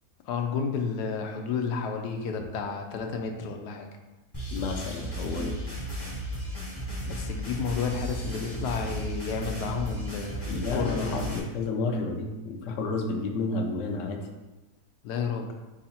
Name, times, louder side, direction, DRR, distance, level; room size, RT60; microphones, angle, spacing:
voice 1, 0.3-3.9 7.1-11.3 15.0-15.5, left 5 dB, 90° left, 4 dB, 1.2 m, -31 dB
sound 1, 4.3-11.4, equal, 20° left, 0.7 m, -34 dB
voice 2, 4.5-5.6 10.5-14.2, left 3 dB, 65° left, 2 dB, 0.8 m, -31 dB
4.6 x 2.5 x 4.2 m, 1.1 s
omnidirectional pair, 1.7 m